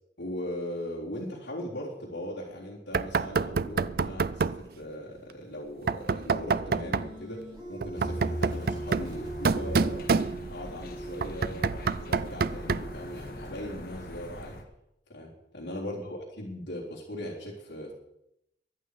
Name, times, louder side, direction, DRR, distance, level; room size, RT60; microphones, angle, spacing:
voice 1, 0.2-7.4 7.7-10.0 10.5-14.6 15.1-17.9, left 1 dB, 80° left, -6 dB, 3.7 m, -39 dB
Knock, 2.9-4.7 5.9-7.1 7.8-10.7 11.2-13.0, right 4 dB, 55° right, 0.4 m, -28 dB
sound 1, 6.4-13.5, right 2 dB, 25° right, 5.7 m, -42 dB
sound 2, 7.9-14.6, left 1 dB, 55° left, 1.7 m, -40 dB
23.0 x 8.8 x 4.9 m, 0.82 s
head